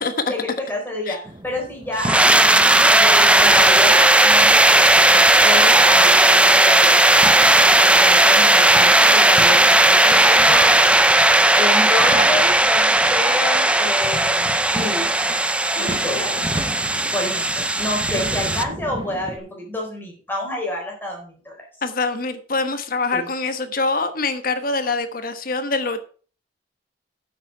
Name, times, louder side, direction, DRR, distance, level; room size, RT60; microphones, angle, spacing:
voice 1, 0.3-1.2 1.4-7.0 8.0-11.1 11.6-15.1 15.8-16.4 17.1-21.6 23.1-23.3, left 1 dB, 10° left, -1 dB, 4.4 m, -28 dB
sound 1, 1.2-19.4, right 1 dB, 25° right, 1.0 m, -36 dB
sound 2, 2.0-18.6, right 1 dB, 5° right, 0.5 m, -15 dB
voice 2, 21.8-26.0, left 3 dB, 50° left, 10 dB, 1.3 m, -24 dB
9.2 x 7.8 x 4.7 m, 0.39 s
head